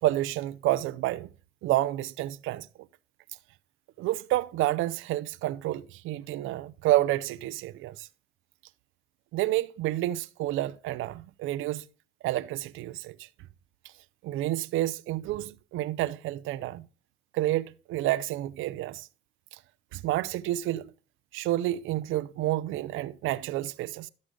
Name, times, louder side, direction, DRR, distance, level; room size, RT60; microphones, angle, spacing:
voice 1, 0.0-1.3 1.6-2.7 4.0-8.1 9.3-11.8 12.2-13.3 14.2-16.8 17.3-19.1 19.5-19.6 19.9-20.9 21.3-24.1, right 15 dB, 90° right, 0.5 m, -29 dB
12.5 x 6.4 x 3.7 m
cardioid pair, 90°, 20 cm